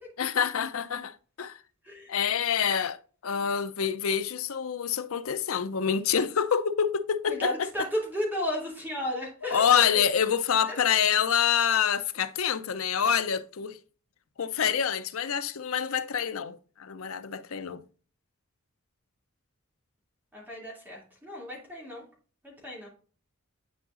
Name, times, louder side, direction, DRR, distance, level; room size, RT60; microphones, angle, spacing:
voice 1, 0.2-1.6 2.1-3.0 3.2-7.9 9.5-13.8 14.4-17.8, left 8 dB, 70° left, 0.6 m, -27 dB
voice 2, 7.3-10.0 10.6-10.7 20.3-22.0 22.4-22.9, left 1 dB, 10° right, 2.6 m, -33 dB
10.5 x 4.8 x 2.5 m
head